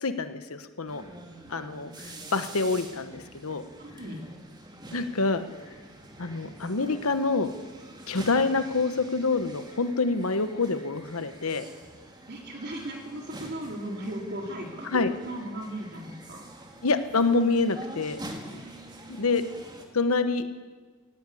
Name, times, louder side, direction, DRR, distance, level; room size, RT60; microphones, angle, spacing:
voice 1, 0.0-1.0 1.5-3.6 4.9-5.5 6.2-7.5 8.1-11.6 14.8-15.1 16.8-18.2 19.1-19.4 19.9-20.6, left 3 dB, 80° left, 10 dB, 1.1 m, -26 dB
sound 1, 0.9-19.8, right 1 dB, 20° right, 2.4 m, -46 dB
voice 2, 3.8-4.2 12.3-16.4 18.4-19.3, right 1 dB, 50° right, 1 dB, 3.8 m, -37 dB
18.5 x 16.5 x 8.5 m, 1.4 s
head